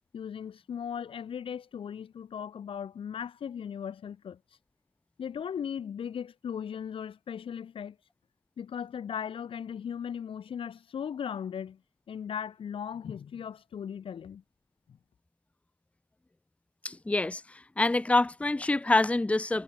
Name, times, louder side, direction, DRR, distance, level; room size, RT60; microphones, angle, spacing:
voice 1, 0.1-4.4 5.2-8.0 8.6-11.8 12.1-14.4 14.9-15.0, left 8 dB, 70° left, 2.5 m, -37 dB
voice 2, 16.8-17.4 17.8-19.6, left 2 dB, 15° left, 0.5 m, -26 dB
supercardioid pair, 45°, 9 cm